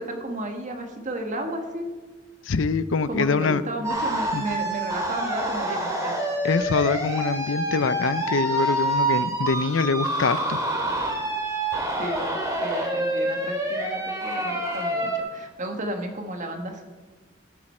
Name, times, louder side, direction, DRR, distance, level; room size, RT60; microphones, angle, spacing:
voice 1, 0.0-1.9 3.1-6.1 12.0-12.3 12.6-16.8, right 1 dB, 40° right, 4 dB, 1.6 m, -33 dB
voice 2, 2.5-3.6 4.3-4.4 6.4-10.6, left 4 dB, 80° left, 15 dB, 0.5 m, -24 dB
sound 1, 3.8-15.2, right 1 dB, 15° right, 2.1 m, -27 dB
16.0 x 9.1 x 4.4 m, 1.3 s
head